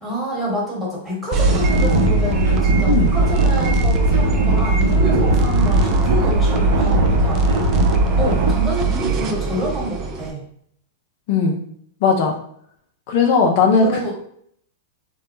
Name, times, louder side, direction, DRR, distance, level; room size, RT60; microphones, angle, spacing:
voice 1, 0.0-7.7 8.2-10.4 13.8-14.1, equal, 10° right, -5 dB, 1.2 m, -27 dB
sound 1, 1.3-10.3, right 5 dB, 35° right, 0.4 m, -21 dB
sound 2, 1.3-8.5, right 1 dB, 65° right, 0.7 m, -19 dB
voice 2, 12.0-12.4 13.1-13.9, left 5 dB, 55° left, 1 dB, 0.4 m, -17 dB
2.2 x 2.1 x 2.9 m, 0.65 s
hypercardioid pair, 105°, 0 cm